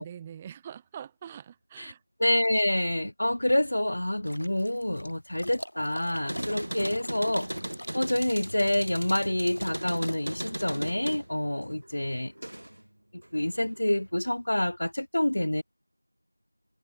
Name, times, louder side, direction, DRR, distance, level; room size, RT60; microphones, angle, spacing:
voice 1, 0.0-2.0, right 9 dB, 5° right, 0.9 m, -43 dB
voice 2, 2.2-7.5 7.9-12.3 13.1-15.6, left 1 dB, 35° left, 0.6 m, -27 dB
sound 1, 4.3-10.4, equal, 60° left, 2.2 m, -45 dB
sound 2, 6.1-12.9 13.2-14.1, right 1 dB, 45° right, 3.8 m, -37 dB
figure-of-eight pair, 180°, 0 cm